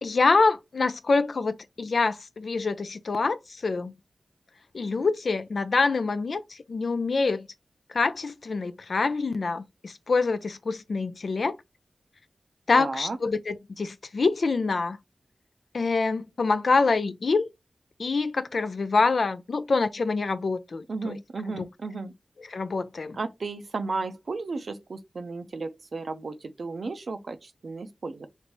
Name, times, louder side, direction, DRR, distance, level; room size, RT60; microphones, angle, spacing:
voice 1, 0.0-3.9 4.7-7.5 7.9-11.6 12.7-15.0 15.7-17.5 18.0-21.2 21.5-21.7 22.5-23.2, left 4 dB, 70° left, 0.3 m, -26 dB
voice 2, 12.8-13.2 20.9-22.1 23.1-28.3, right 3 dB, 70° right, 0.5 m, -34 dB
3.2 x 2.6 x 3.0 m
wide cardioid pair, 75°, 0 cm